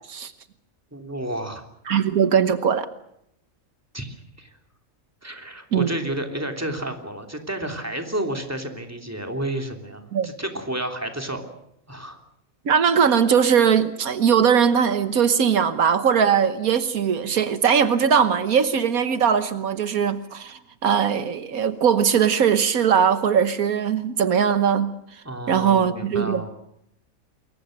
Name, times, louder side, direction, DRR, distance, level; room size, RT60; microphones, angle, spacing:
voice 1, 0.9-1.6 3.9-4.5 5.2-11.5 11.9-12.2 25.2-26.5, right 1 dB, 10° right, 4 dB, 3.1 m, -31 dB
voice 2, 1.9-2.9 5.7-5.9 10.1-10.3 12.6-25.2 25.5-26.5, right 7 dB, 80° right, 11 dB, 1.6 m, -20 dB
28.0 x 23.0 x 6.6 m, 0.79 s
omnidirectional pair, 1.5 m